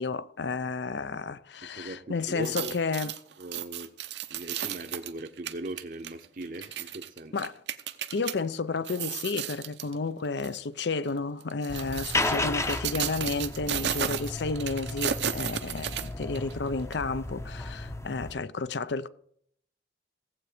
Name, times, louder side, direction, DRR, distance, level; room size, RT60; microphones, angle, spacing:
voice 1, 0.0-3.1 7.3-7.5 8.1-19.1, left 4 dB, 75° left, 0.6 m, -32 dB
voice 2, 1.6-2.8 3.4-3.9 4.3-7.4, right 2 dB, 50° right, 0.8 m, -39 dB
sound 1, 2.3-8.3 8.8-9.9 10.4-10.6 11.4-16.5 16.9-17.0, right 9 dB, 75° right, 0.8 m, -34 dB
sound 2, 11.7-18.3, left 2 dB, 15° left, 0.6 m, -34 dB
16.5 x 8.0 x 5.0 m
head